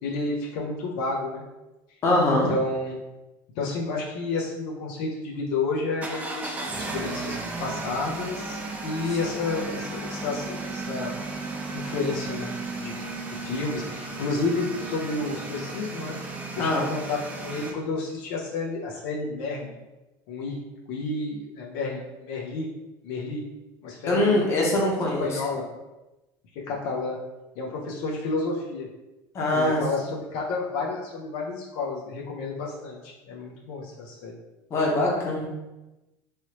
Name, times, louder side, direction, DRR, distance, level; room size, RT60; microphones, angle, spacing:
voice 1, 0.0-1.4 2.3-3.0 3.6-11.1 11.7-12.9 13.2-16.2 16.6-19.8 20.3-22.7 23.0-23.5 23.8-24.4 25.2-25.6 26.5-27.2 27.6-28.9 29.5-34.4, left 3 dB, 70° left, -2 dB, 0.6 m, -31 dB
voice 2, 2.0-2.5 16.6-16.9 24.0-25.4 29.3-29.8 34.7-35.5, left 1 dB, 30° left, -3 dB, 0.9 m, -22 dB
sound 1, 6.0-17.7, right 3 dB, 15° right, 0.4 m, -34 dB
3.2 x 2.9 x 2.9 m, 1.0 s
cardioid pair, 150°, 9 cm